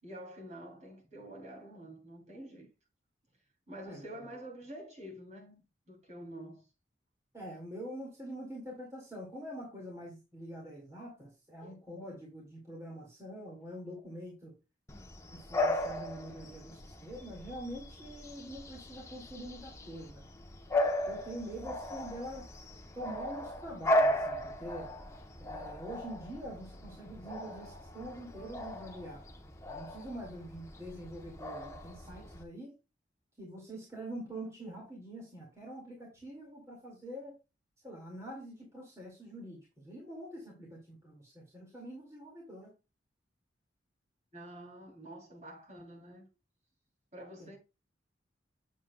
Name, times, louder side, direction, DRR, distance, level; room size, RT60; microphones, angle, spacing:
voice 1, 0.0-2.7 3.7-6.7 11.6-11.8 44.3-46.3 47.1-47.6, right 1 dB, 40° right, 3.0 m, -48 dB
voice 2, 7.3-14.6 15.3-20.2 21.0-22.5 22.9-24.9 25.4-29.2 29.7-32.7 33.4-37.3 37.8-42.7, right 1 dB, 15° right, 2.1 m, -45 dB
Bark / Bird vocalization bird call bird song, 14.9-32.4, left 1 dB, 15° left, 0.8 m, -36 dB
7.5 x 7.4 x 2.2 m
head